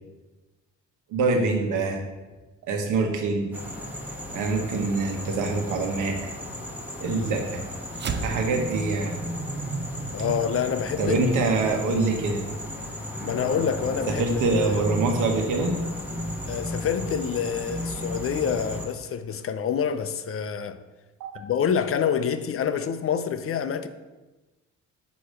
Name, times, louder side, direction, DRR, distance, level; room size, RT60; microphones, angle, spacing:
voice 1, 1.1-2.0 2.7-3.5 4.3-6.3 7.0-7.6 8.2-9.1 11.0-12.5 14.1-15.8 21.2-21.3, right 3 dB, 90° right, 1.3 m, -25 dB
sound 1, 3.5-18.9, left 1 dB, 5° right, 1.4 m, -35 dB
sound 2, 7.9-12.6, right 5 dB, 35° right, 0.6 m, -35 dB
voice 2, 10.1-11.2 13.2-14.2 14.6-14.8 16.5-20.8 21.3-23.9, left 7 dB, 45° left, 0.6 m, -27 dB
8.4 x 3.1 x 6.3 m
cardioid pair, 90°, 30 cm